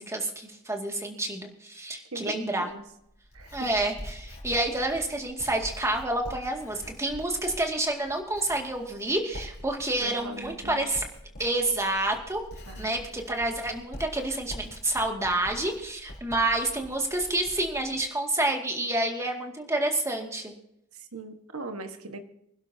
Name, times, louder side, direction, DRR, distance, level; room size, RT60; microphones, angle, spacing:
voice 1, 0.0-2.7 3.5-11.0 11.4-12.4 12.8-20.5, right 2 dB, 15° right, 2 dB, 2.1 m, -29 dB
voice 2, 2.1-2.8 3.3-3.7 10.0-10.9 12.7-13.0 20.9-22.2, right 2 dB, 65° right, 7 dB, 1.5 m, -40 dB
Writing, 2.7-18.1, left 1 dB, 45° left, 3.7 m, -45 dB
25.5 x 11.5 x 2.8 m, 0.78 s
head